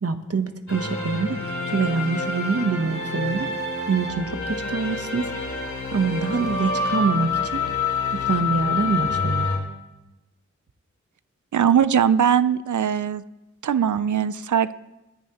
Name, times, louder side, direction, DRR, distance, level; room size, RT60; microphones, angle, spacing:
voice 1, 0.0-1.4 1.7-3.5 3.9-5.3 5.9-7.6 8.1-9.5, right 4 dB, 55° right, 8 dB, 1.0 m, -25 dB
sound 1, 0.7-9.6, left 4 dB, 80° left, 2.6 m, -27 dB
voice 2, 11.5-13.2 13.6-14.7, right 8 dB, 85° right, 15 dB, 0.5 m, -20 dB
23.0 x 10.5 x 3.0 m, 1.0 s
wide cardioid pair, 65°, 29 cm